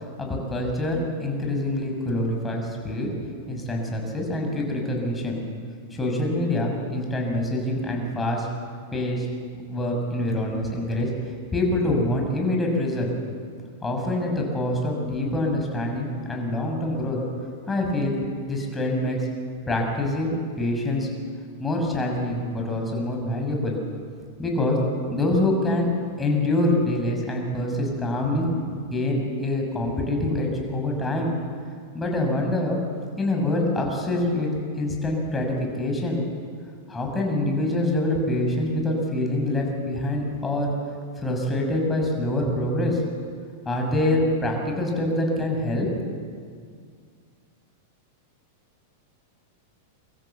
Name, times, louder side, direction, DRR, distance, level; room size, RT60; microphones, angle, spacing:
voice 1, 0.2-3.1 3.5-5.4 5.9-8.5 8.9-9.3 9.7-11.1 11.5-13.1 13.8-17.2 17.7-18.2 18.5-19.3 19.7-21.1 21.6-23.8 24.4-24.8 25.1-25.9 26.2-31.3 31.9-32.8 33.2-34.5 34.8-36.2 36.9-40.7 41.2-43.0 43.6-45.9, left 1 dB, 15° left, 1 dB, 5.8 m, -25 dB
24.5 x 14.0 x 7.9 m, 2.1 s
hypercardioid pair, 115°, 0 cm